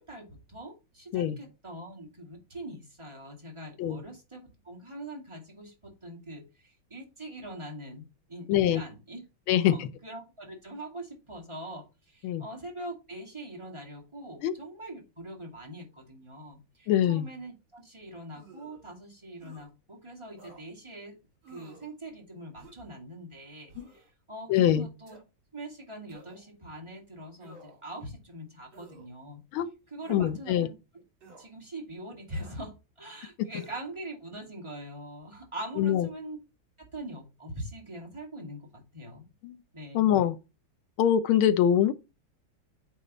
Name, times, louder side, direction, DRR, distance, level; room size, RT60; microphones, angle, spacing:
voice 1, 0.0-8.0 8.3-9.2 9.5-21.2 21.5-25.2 25.5-29.4 29.9-30.7 31.4-36.4 36.8-39.3 39.7-40.2, right 1 dB, 15° right, 1.7 m, -43 dB
voice 2, 8.5-8.8 9.5-9.9 12.2-12.4 14.4-14.5 16.9-17.3 23.8-23.9 24.5-24.9 29.5-29.7 30.1-30.7 33.4-33.5 35.8-36.1 39.4-39.6 39.9-40.4 41.0-41.9, left 10 dB, 85° left, 1.5 m, -24 dB
sound 1, 18.3-18.8 19.4-19.7 20.4-20.6 21.4-21.9 22.5-22.9 23.7-24.1 25.0-25.2 26.1-26.5 27.4-27.9 28.7-29.1 30.0-30.3 31.2-31.5 32.3-32.6 33.5-33.8, right 2 dB, 70° right, 3.0 m, -52 dB
8.8 x 3.5 x 4.0 m
omnidirectional pair, 2.3 m